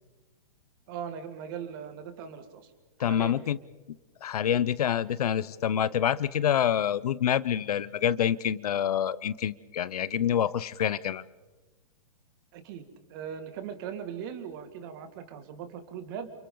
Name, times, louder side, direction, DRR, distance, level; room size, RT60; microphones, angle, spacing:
voice 1, 0.9-2.7 3.1-3.5 12.5-16.3, right 8 dB, 35° right, 8 dB, 2.2 m, -39 dB
voice 2, 3.0-3.6 4.2-11.2, left 9 dB, 65° left, 18 dB, 0.8 m, -27 dB
29.5 x 28.5 x 3.9 m, 1.1 s
hypercardioid pair, 165°, 21 cm